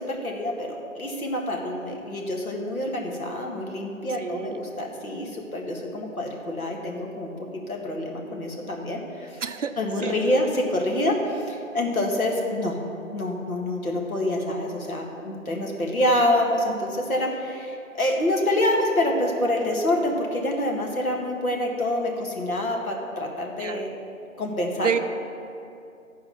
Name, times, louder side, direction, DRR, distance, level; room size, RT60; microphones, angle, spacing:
voice 1, 0.0-9.4 9.8-12.8 13.1-23.9 24.4-24.9, left 1 dB, 80° left, 0 dB, 1.8 m, -26 dB
voice 2, 4.2-4.6 9.4-10.2 23.6-23.8 24.8-25.0, right 7 dB, 60° right, 10 dB, 0.5 m, -29 dB
12.0 x 4.7 x 5.8 m, 2.6 s
figure-of-eight pair, 170°, 42 cm